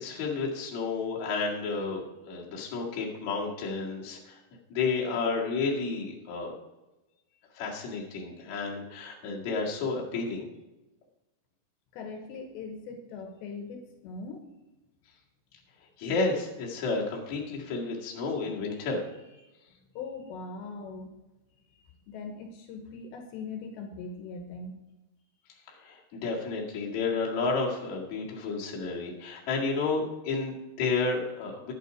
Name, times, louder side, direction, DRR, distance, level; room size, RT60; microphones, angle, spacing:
voice 1, 0.0-4.4 4.7-6.5 7.6-10.5 16.0-19.0 19.3-19.4 25.8-31.7, left 4 dB, 50° left, -3 dB, 2.9 m, -31 dB
voice 2, 11.9-14.5 19.9-21.1 22.1-24.7, left 4 dB, 80° left, 5 dB, 3.2 m, -40 dB
11.0 x 8.9 x 5.0 m, 1.0 s
omnidirectional pair, 5.1 m